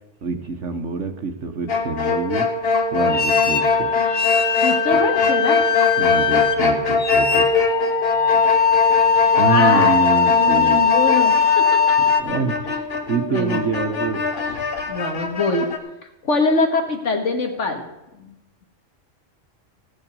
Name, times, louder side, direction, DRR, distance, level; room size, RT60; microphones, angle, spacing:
voice 1, 0.2-2.5 2.9-4.0 6.0-7.5 9.4-10.9 12.2-12.6 13.1-14.2, right 4 dB, 65° right, 7 dB, 1.5 m, -25 dB
sound 1, 1.7-15.8, left 3 dB, 50° left, 1.4 m, -22 dB
sound 2, 3.0-12.2, left 6 dB, 30° left, 0.7 m, -19 dB
voice 2, 4.6-5.6 9.5-10.0 10.3-11.6 12.7-12.8 13.3-13.6 14.9-15.7 16.2-17.8 18.2-18.3, left 3 dB, 65° left, 4 dB, 2.0 m, -23 dB
15.0 x 8.8 x 5.4 m, 0.94 s
omnidirectional pair, 1.3 m